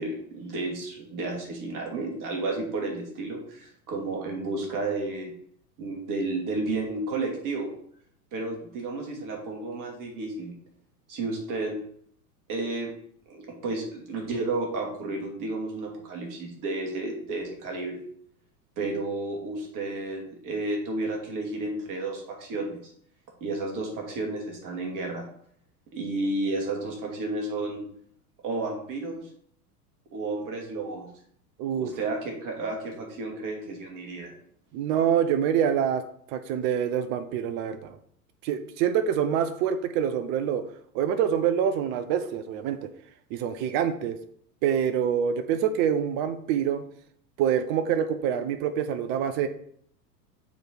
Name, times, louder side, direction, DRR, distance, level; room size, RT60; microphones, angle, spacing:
voice 1, 0.0-5.3 5.8-7.7 8.3-10.5 11.1-11.8 12.5-12.9 13.3-18.0 18.8-22.8 23.4-25.2 25.9-27.9 28.4-29.2 30.1-31.1 31.8-34.3, right 2 dB, 40° right, 1 dB, 2.7 m, -32 dB
voice 2, 31.6-31.9 34.7-36.0 36.3-38.0 38.4-40.6 40.9-42.9 43.3-44.2 44.6-46.8 47.4-49.5, right 8 dB, 25° right, 10 dB, 0.3 m, -26 dB
7.1 x 4.7 x 4.5 m, 0.64 s
figure-of-eight pair, 90°, 49 cm